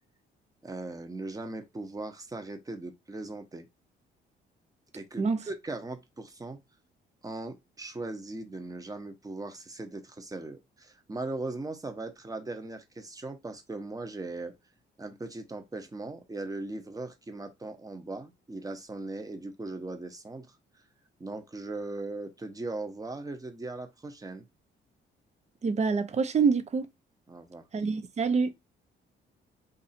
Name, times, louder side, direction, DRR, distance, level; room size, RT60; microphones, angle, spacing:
voice 1, 0.6-3.7 4.9-6.6 7.2-14.5 15.0-20.6 21.2-24.4 27.3-27.6, right 2 dB, 20° right, 0.9 m, -39 dB
voice 2, 25.6-26.9 27.7-28.5, right 5 dB, 35° right, 0.6 m, -26 dB
2.7 x 2.6 x 4.2 m
cardioid pair, 90°, 20 cm